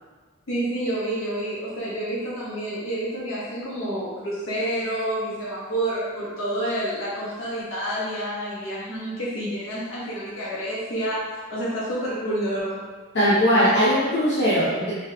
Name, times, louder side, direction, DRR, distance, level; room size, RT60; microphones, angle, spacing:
voice 1, 0.5-12.8, right 1 dB, 80° left, -9 dB, 1.3 m, -29 dB
voice 2, 13.1-14.9, equal, 55° left, -10 dB, 0.9 m, -19 dB
5.4 x 3.0 x 2.4 m, 1.4 s
head